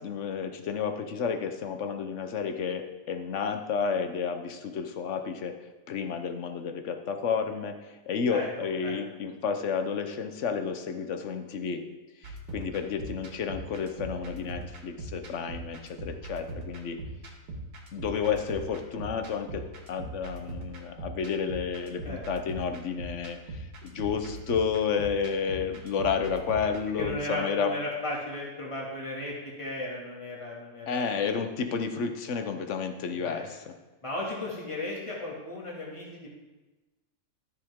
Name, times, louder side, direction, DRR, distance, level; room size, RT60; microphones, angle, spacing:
voice 1, 0.0-5.6 5.9-11.8 12.2-17.0 17.9-27.7 30.9-33.7, left 6 dB, 55° left, 6 dB, 1.1 m, -31 dB
sound 1, 12.2-27.1, right 2 dB, 85° right, 2.0 m, -41 dB
voice 2, 27.0-31.1 33.1-33.5 34.0-36.3, left 2 dB, 20° left, -4 dB, 2.2 m, -35 dB
13.0 x 7.0 x 3.7 m, 1.1 s
omnidirectional pair, 1.6 m